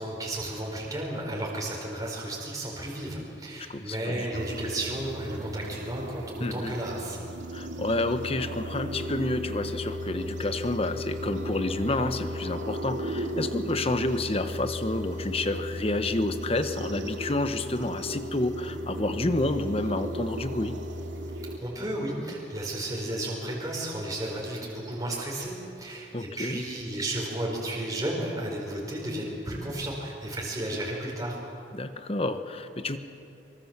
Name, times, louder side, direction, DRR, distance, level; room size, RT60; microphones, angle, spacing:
voice 1, 0.0-7.2 21.6-31.4, right 1 dB, 20° right, -3 dB, 4.8 m, -33 dB
voice 2, 3.7-4.3 6.4-6.7 7.5-20.8 26.1-26.6 31.7-33.0, left 2 dB, 35° left, 9 dB, 1.1 m, -29 dB
sound 1, 4.3-21.6, right 1 dB, 90° right, 2.4 m, -36 dB
sound 2, 8.9-26.3, left 2 dB, 15° left, 1.3 m, -41 dB
24.5 x 24.0 x 7.5 m, 2.7 s
head